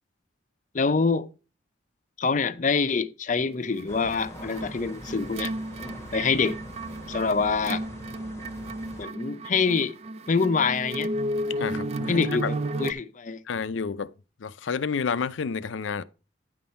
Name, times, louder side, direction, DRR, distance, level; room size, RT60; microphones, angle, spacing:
voice 1, 0.7-1.3 2.2-5.5 6.1-6.6 7.1-7.8 9.0-9.9 10.3-11.1 12.1-13.4, left 4 dB, 40° left, 0.5 m, -25 dB
sound 1, 3.7-12.9, right 1 dB, 35° right, 0.3 m, -33 dB
sound 2, 3.9-9.1, left 1 dB, 15° left, 1.0 m, -43 dB
voice 2, 11.6-12.5 13.5-14.1 14.4-16.0, left 5 dB, 90° left, 0.5 m, -30 dB
9.5 x 5.5 x 4.3 m
head